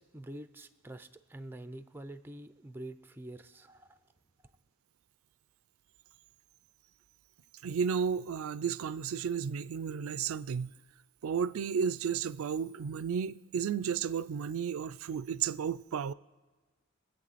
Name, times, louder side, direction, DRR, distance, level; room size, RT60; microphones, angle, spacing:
voice 1, 0.0-4.0, right 1 dB, 10° right, 0.4 m, -46 dB
voice 2, 7.6-10.7 11.2-16.1, right 7 dB, 90° right, 0.4 m, -33 dB
23.5 x 8.1 x 4.1 m
head